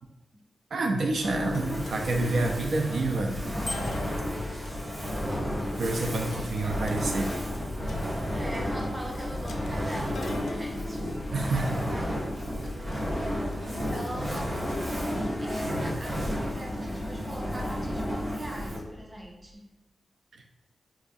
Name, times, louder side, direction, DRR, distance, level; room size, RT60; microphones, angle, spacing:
voice 1, 0.7-3.3 5.8-7.3 11.3-11.8 20.3-20.4, right 2 dB, 70° right, 2 dB, 0.3 m, -28 dB
Fire, 1.0-19.0, equal, 40° right, 0.9 m, -32 dB
sound 1, 1.2-17.7, left 3 dB, 75° left, 0.3 m, -43 dB
Bicycle bell, 3.6-4.3, left 1 dB, 20° left, 0.7 m, -37 dB
voice 2, 4.8-5.6 6.2-6.8 8.3-11.0 11.4-12.2 12.6-15.0 15.4-19.7, equal, 20° right, -1 dB, 0.5 m, -42 dB
4.6 x 2.3 x 2.5 m, 0.96 s
wide cardioid pair, 170°, 0 cm